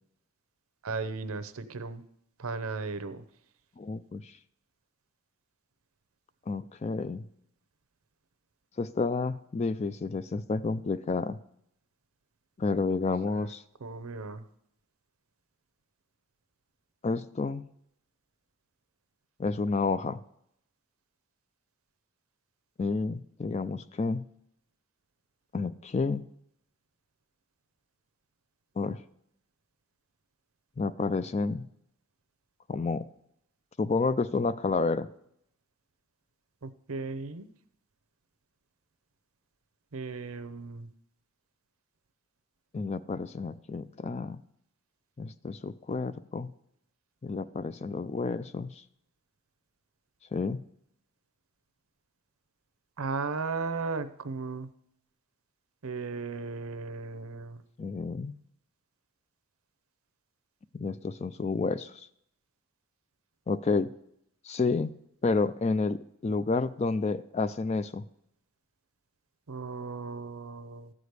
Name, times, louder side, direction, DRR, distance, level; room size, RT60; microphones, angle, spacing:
voice 1, 0.8-2.0 2.4-3.2 13.3-13.5 13.8-14.4 36.6-37.5 39.9-40.9 53.0-54.7 55.8-57.6 69.5-70.9, right 4 dB, 75° right, 12 dB, 0.7 m, -36 dB
voice 2, 3.8-4.4 6.5-7.3 8.8-11.4 12.6-13.6 17.0-17.7 19.4-20.2 22.8-24.3 25.5-26.3 28.8-29.0 30.8-31.7 32.7-33.1 33.8-35.1 42.7-44.4 45.2-46.5 47.2-48.8 50.3-50.6 57.8-58.4 60.7-62.1 63.5-63.9 64.4-68.1, left 4 dB, 30° left, 14 dB, 0.3 m, -30 dB
13.5 x 5.0 x 8.0 m, 0.75 s
head